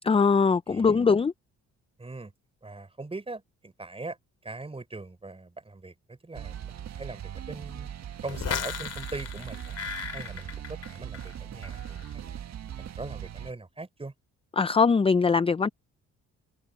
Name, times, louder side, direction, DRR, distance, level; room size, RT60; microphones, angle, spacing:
voice 1, 0.1-1.3 14.6-15.7, left 5 dB, 20° left, 0.5 m, -21 dB
voice 2, 0.7-1.1 2.0-2.3 2.6-4.2 4.4-7.9 8.2-9.8 10.1-12.4 12.8-14.1, right 3 dB, 20° right, 4.8 m, -41 dB
sound 1, 6.3-13.5, right 10 dB, 60° right, 1.6 m, -40 dB
sound 2, 8.3-11.3 11.6-12.1, left 7 dB, 55° left, 2.9 m, -36 dB
open air
cardioid pair, 90°, 30 cm